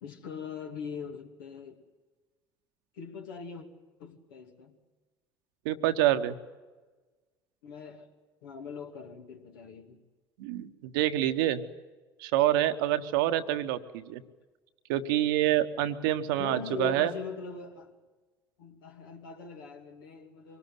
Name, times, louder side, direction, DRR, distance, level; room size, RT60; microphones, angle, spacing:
voice 1, 0.0-1.8 2.9-3.7 4.0-4.8 7.6-8.1 8.4-10.0 16.4-17.9 18.6-20.6, left 5 dB, 75° left, 3 dB, 2.7 m, -41 dB
voice 2, 5.6-6.3 10.4-11.6 12.2-14.2 14.9-17.1, right 13 dB, 70° right, 9 dB, 1.2 m, -27 dB
24.5 x 20.0 x 7.9 m, 1.3 s
figure-of-eight pair, 60°, 12 cm